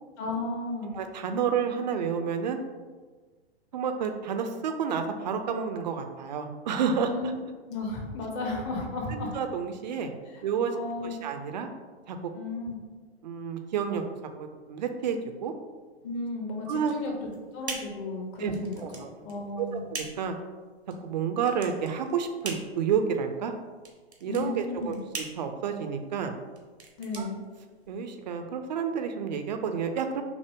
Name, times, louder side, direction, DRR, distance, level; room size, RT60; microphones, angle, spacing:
voice 1, 0.2-1.0 7.0-7.4 7.7-9.3 10.7-11.2 12.3-12.8 16.0-17.1 17.5-19.9 24.3-25.0 27.0-27.4, left 2 dB, 25° left, 1 dB, 0.8 m, -34 dB
voice 2, 0.9-2.6 3.7-7.1 9.1-10.1 10.4-10.8 11.0-11.7 12.1-12.2 13.2-14.0 14.4-15.5 16.7-16.9 18.4-19.1 19.6-20.4 21.0-23.5 24.2-26.3 27.2-27.3 27.9-30.2, right 7 dB, 45° right, 6 dB, 0.5 m, -30 dB
sound 1, 16.8-28.1, right 3 dB, 85° right, 0.9 m, -42 dB
5.8 x 2.1 x 3.5 m, 1.4 s
figure-of-eight pair, 110°, 32 cm